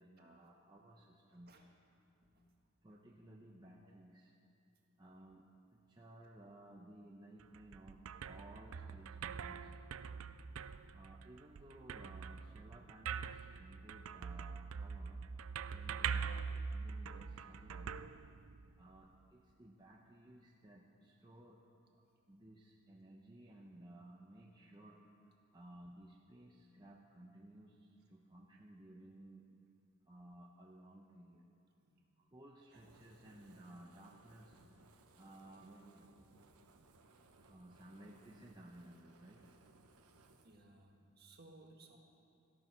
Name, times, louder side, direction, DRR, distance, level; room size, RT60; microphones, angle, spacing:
voice 1, 0.0-1.7 2.8-4.3 5.0-9.7 10.9-18.0 18.8-21.7 22.3-25.1 25.5-29.6 30.1-31.5 32.2-34.6 35.2-36.1 37.4-39.5, right 1 dB, 20° right, -2 dB, 0.8 m, -57 dB
sound 1, 7.4-18.9, right 6 dB, 70° right, 0.4 m, -44 dB
Fire, 32.7-40.5, right 3 dB, 90° right, 1.1 m, -65 dB
voice 2, 40.4-42.0, right 2 dB, 45° right, 1 dB, 1.6 m, -60 dB
18.0 x 14.0 x 4.5 m, 2.6 s
head